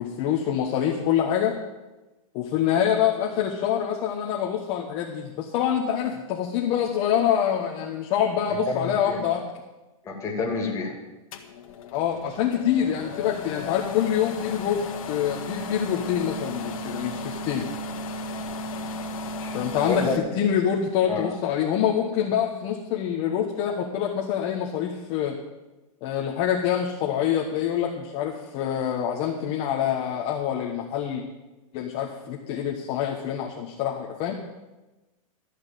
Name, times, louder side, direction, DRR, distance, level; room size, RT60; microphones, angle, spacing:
voice 1, 0.0-1.6 2.3-9.4 11.9-14.8 15.1-17.7 19.5-25.4 26.0-31.2 31.7-34.3, left 9 dB, 35° left, -1 dB, 1.2 m, -26 dB
voice 2, 8.5-9.2 10.0-10.9 19.4-19.6 19.9-20.1 21.1-21.3, left 4 dB, 15° left, -1 dB, 2.5 m, -29 dB
sound 1, 11.3-20.2, left 2 dB, 70° left, 1.7 m, -34 dB
13.0 x 6.2 x 9.1 m, 1.1 s
supercardioid pair, 160°, 18 cm